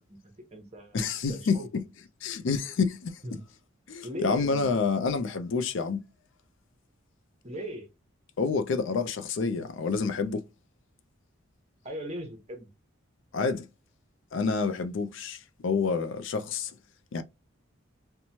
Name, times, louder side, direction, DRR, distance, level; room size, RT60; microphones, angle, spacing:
voice 1, 0.1-1.7 3.2-3.5 4.0-4.7 7.4-7.9 11.8-12.7, equal, 30° right, 0.7 m, -39 dB
voice 2, 0.9-1.8 2.2-3.2 3.9-6.0 8.4-10.4 13.3-13.7 14.3-16.7 17.1-17.2, left 4 dB, 65° left, 0.4 m, -28 dB
3.0 x 2.2 x 2.7 m
head